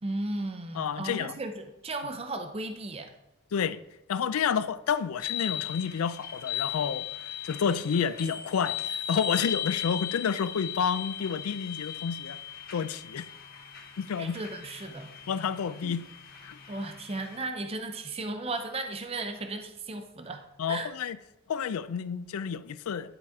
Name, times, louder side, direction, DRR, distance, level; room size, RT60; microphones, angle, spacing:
voice 1, 0.0-3.1 14.2-15.1 15.8-15.9 16.7-20.9, right 2 dB, 30° right, 0.5 m, -35 dB
voice 2, 0.8-1.4 3.5-3.8 4.1-12.4 12.7-13.3 14.0-14.4 15.3-16.0 16.4-16.6 20.6-21.2 21.5-23.2, left 7 dB, 85° left, 0.4 m, -30 dB
sound 1, 5.2-17.4, left 10 dB, 45° left, 1.1 m, -37 dB
11.0 x 4.9 x 3.5 m
head